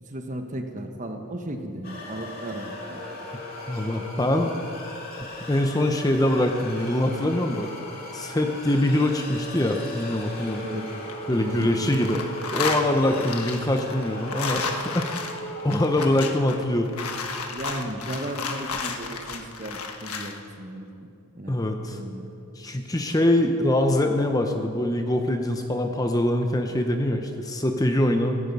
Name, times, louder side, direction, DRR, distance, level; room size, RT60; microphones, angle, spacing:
voice 1, 0.0-3.0 10.6-10.9 11.4-11.9 13.2-13.3 17.5-21.1 21.3-21.6 21.9-22.2, right 1 dB, 35° right, 5 dB, 1.2 m, -35 dB
sound 1, 1.8-15.9, equal, 40° left, 2.4 m, -38 dB
voice 2, 3.7-4.5 5.5-7.7 8.1-10.7 11.3-12.3 12.5-15.3 15.6-16.9 21.5-22.0 22.6-28.4, left 1 dB, 15° left, 4 dB, 0.7 m, -23 dB
sound 2, 11.1-11.7 11.9-20.4, left 4 dB, 80° left, 1.4 m, -32 dB
16.0 x 15.5 x 5.4 m, 2.7 s
head